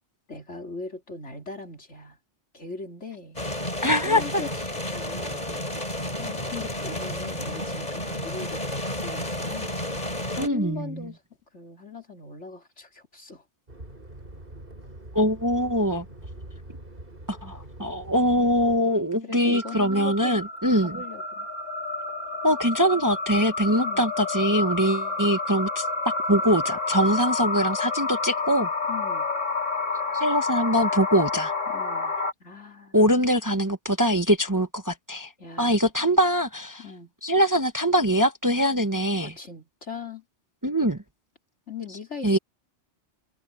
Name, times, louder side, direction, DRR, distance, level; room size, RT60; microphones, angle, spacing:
voice 1, 0.3-2.2 2.5-3.4 3.8-9.8 10.3-11.2 11.5-13.4 19.2-20.4 20.8-21.5 23.7-24.0 28.9-29.3 31.7-33.0 35.4-35.8 36.8-37.1 39.2-40.2 41.7-42.4, left 4 dB, 70° left, 4.2 m, -40 dB
sound 1, 3.4-10.5, left 1 dB, 35° left, 4.8 m, -31 dB
voice 2, 3.8-4.4 10.4-11.1 15.1-16.0 17.3-21.0 22.4-28.7 30.1-31.5 32.9-35.3 35.6-36.8 37.2-39.3 40.6-41.0 42.2-42.4, equal, 15° right, 1.0 m, -23 dB
sound 2, 13.7-18.8, right 1 dB, 45° right, 5.1 m, -43 dB
sound 3, 19.5-32.3, left 3 dB, 85° left, 2.8 m, -29 dB
omnidirectional pair, 1.2 m